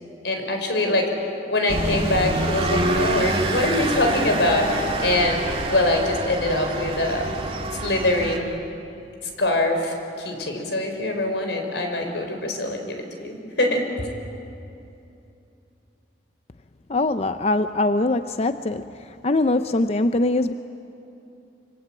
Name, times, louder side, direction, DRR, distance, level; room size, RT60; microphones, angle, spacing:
voice 1, 0.2-1.1 1.5-5.4 5.7-7.3 7.8-8.6 9.4-14.1, left 1 dB, 85° left, 4 dB, 4.7 m, -23 dB
sound 1, 1.7-8.4, right 2 dB, 30° right, 2.1 m, -26 dB
voice 2, 16.9-18.9 19.2-20.5, left 2 dB, 35° left, 10 dB, 0.5 m, -22 dB
25.5 x 25.5 x 8.9 m, 2.8 s
head